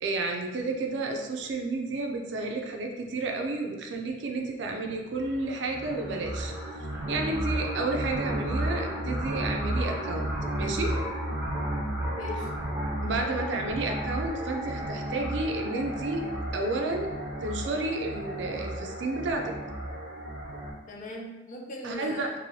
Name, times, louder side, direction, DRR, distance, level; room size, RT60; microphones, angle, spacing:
voice 1, 0.0-6.5 7.1-10.3 10.6-10.9 13.0-16.2 16.5-17.1 17.4-19.5 21.8-22.3, right 2 dB, 70° right, 3 dB, 0.4 m, -31 dB
sound 1, 5.1-20.7, right 1 dB, 10° right, 0.6 m, -33 dB
voice 2, 11.9-12.5 20.9-22.3, left 1 dB, 40° left, 0 dB, 0.4 m, -39 dB
3.1 x 2.6 x 2.7 m, 1.1 s
head